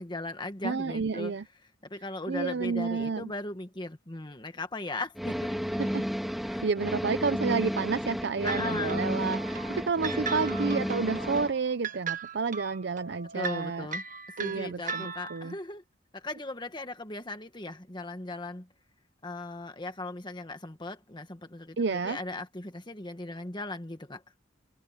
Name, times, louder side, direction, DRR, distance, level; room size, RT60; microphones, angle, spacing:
voice 1, 0.0-1.3 1.9-5.6 6.4-6.7 8.4-9.0 13.3-14.0 14.4-15.8 16.1-18.7 19.2-24.2, left 2 dB, 25° left, 1.5 m, -38 dB
voice 2, 0.6-1.4 2.3-3.3 5.8-6.1 6.6-13.9 14.4-15.5 21.8-22.2, right 4 dB, 60° right, 0.5 m, -30 dB
Drive on lawnmower, 5.2-11.5, equal, ahead, 2.7 m, -32 dB
sound 1, 8.5-15.5, right 5 dB, 40° right, 1.5 m, -38 dB
head